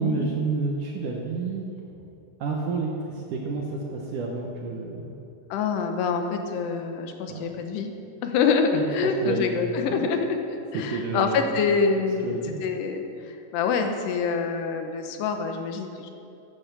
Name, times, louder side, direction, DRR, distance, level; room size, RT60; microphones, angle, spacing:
voice 1, 0.0-1.7 2.4-5.0 7.3-7.5 8.7-9.6 9.9-10.1 10.7-11.5 12.2-12.6, right 4 dB, 70° right, 0 dB, 2.1 m, -29 dB
voice 2, 5.5-7.9 8.2-16.1, left 5 dB, 85° left, 5 dB, 3.1 m, -26 dB
14.5 x 10.5 x 6.0 m, 2.7 s
omnidirectional pair, 4.8 m